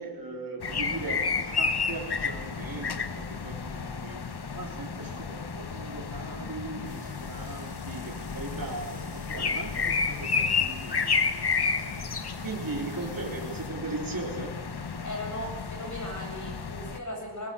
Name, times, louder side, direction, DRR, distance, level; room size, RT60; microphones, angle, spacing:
voice 1, 0.0-12.1 12.4-14.6, right 3 dB, 55° right, 0 dB, 3.5 m, -39 dB
sound 1, 0.6-17.0, left 5 dB, 70° left, 1.3 m, -31 dB
sound 2, 6.9-13.7, left 1 dB, 20° left, 4.1 m, -53 dB
voice 2, 15.0-17.5, left 1 dB, 45° left, 2 dB, 7.0 m, -37 dB
23.0 x 19.5 x 7.6 m, 1.2 s
wide cardioid pair, 70°, 41 cm